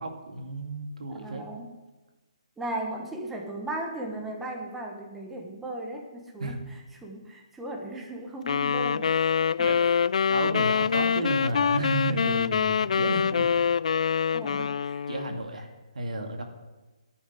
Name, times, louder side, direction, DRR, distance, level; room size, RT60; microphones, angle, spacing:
voice 1, 0.0-1.5 6.4-6.6 9.6-9.8 10.3-13.5 14.6-14.7 15.1-15.7 15.9-16.4, right 2 dB, 75° right, 3 dB, 2.3 m, -32 dB
voice 2, 1.1-1.7 2.6-10.0 11.2-11.3 14.3-15.0, right 1 dB, 5° right, 1 dB, 1.2 m, -37 dB
sound 1, 8.5-15.4, left 6 dB, 65° left, 0.3 m, -25 dB
11.5 x 6.3 x 9.3 m, 1.2 s
hypercardioid pair, 160°, 4 cm